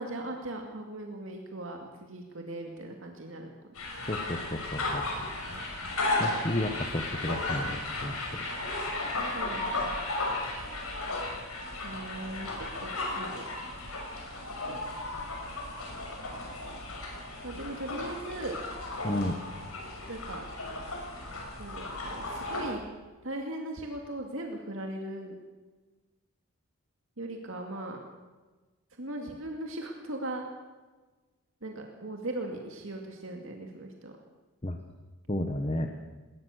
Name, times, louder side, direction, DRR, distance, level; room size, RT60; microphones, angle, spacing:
voice 1, 0.0-3.5 9.3-10.0 11.8-12.5 12.8-13.4 17.4-18.6 20.1-20.4 21.6-22.8 23.2-25.3 27.2-28.0 28.9-30.4 31.6-34.1, right 1 dB, 65° right, 2 dB, 2.3 m, -38 dB
sound 1, 3.7-22.7, left 2 dB, 75° left, 6.0 m, -35 dB
voice 2, 4.1-5.0 6.2-8.2 19.0-19.4 34.6-34.8 35.3-35.9, left 1 dB, 25° left, 5 dB, 1.3 m, -32 dB
20.5 x 19.0 x 6.6 m, 1.3 s
head